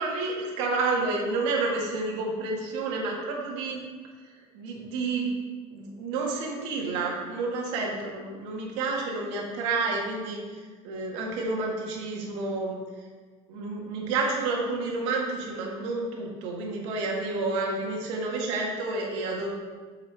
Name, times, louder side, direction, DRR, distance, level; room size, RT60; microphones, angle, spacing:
voice 1, 0.0-3.8 4.5-5.3 5.7-10.4 10.8-12.8 13.5-19.5, right 3 dB, 85° right, -2 dB, 1.8 m, -30 dB
7.5 x 7.0 x 3.4 m, 1.5 s
cardioid pair, 175°, 15 cm